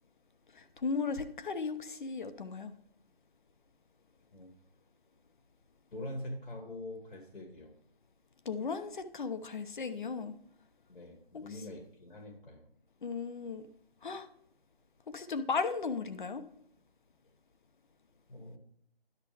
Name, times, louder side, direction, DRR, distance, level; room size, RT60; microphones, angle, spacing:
voice 1, 0.5-2.7 8.4-10.3 11.3-11.4 13.0-13.6 14.0-14.3 15.1-16.4, left 4 dB, 50° left, 10 dB, 0.9 m, -36 dB
voice 2, 5.9-7.8 10.9-12.7 18.3-18.6, left 1 dB, 75° left, 3 dB, 2.2 m, -44 dB
10.5 x 6.6 x 3.4 m, 0.70 s
figure-of-eight pair, 160°, 30 cm